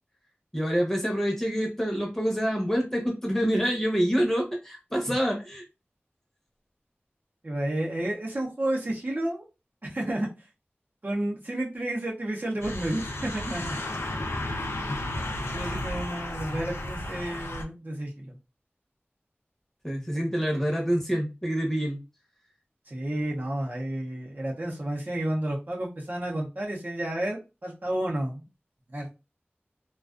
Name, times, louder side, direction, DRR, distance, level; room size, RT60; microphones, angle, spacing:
voice 1, 0.5-5.6 19.8-22.0, equal, 10° left, 0 dB, 0.8 m, -26 dB
voice 2, 7.4-9.4 9.8-10.3 11.0-13.8 15.5-18.4 22.9-28.5 28.9-29.1, right 1 dB, 45° right, -2 dB, 0.7 m, -31 dB
sound 1, 12.6-17.6, left 1 dB, 75° left, 0.4 m, -33 dB
2.3 x 2.3 x 2.4 m, 0.28 s
wide cardioid pair, 55°, 4 cm